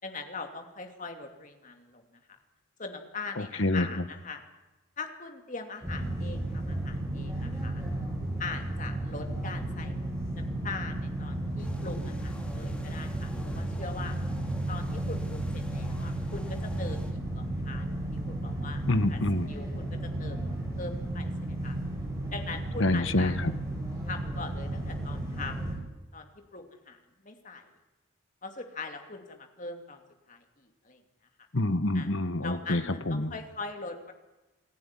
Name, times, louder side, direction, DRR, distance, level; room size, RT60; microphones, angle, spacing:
voice 1, 0.0-2.4 2.8-4.4 5.0-7.8 8.4-10.0 10.3-14.2 14.7-19.2 19.5-20.5 20.8-21.8 22.3-23.3 24.0-25.7 26.1-27.7 28.4-30.0 30.3-31.0 31.9-32.1 32.4-32.8 33.1-34.1, left 4 dB, 35° left, 5 dB, 2.7 m, -41 dB
voice 2, 3.4-3.9 18.9-19.5 22.8-23.5 31.5-33.3, left 2 dB, 60° left, 11 dB, 1.4 m, -27 dB
sound 1, 5.8-25.8, right 1 dB, 10° right, 7.9 m, -34 dB
sound 2, 11.6-17.1, equal, 5° left, 3.0 m, -50 dB
27.5 x 15.5 x 10.0 m, 1.1 s
head